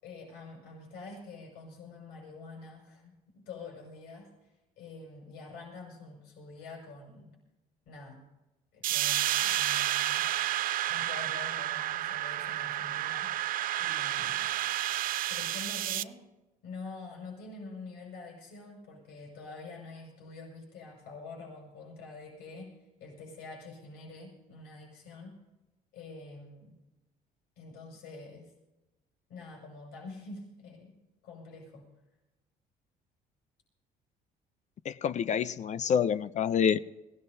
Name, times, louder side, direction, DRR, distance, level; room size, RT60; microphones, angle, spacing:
voice 1, 0.0-7.3 7.9-8.2 8.7-10.2 10.9-13.4 13.8-14.5 15.3-16.3 16.6-25.4 25.9-26.8 27.6-28.5 29.3-31.0 31.2-31.9, left 3 dB, 80° left, -1 dB, 6.4 m, -46 dB
sound 1, 8.8-16.0, right 13 dB, 55° right, 0.5 m, -30 dB
voice 2, 34.8-36.8, left 7 dB, 45° left, 14 dB, 0.5 m, -27 dB
22.0 x 17.0 x 2.7 m, 1.0 s
cardioid pair, 110°, 17 cm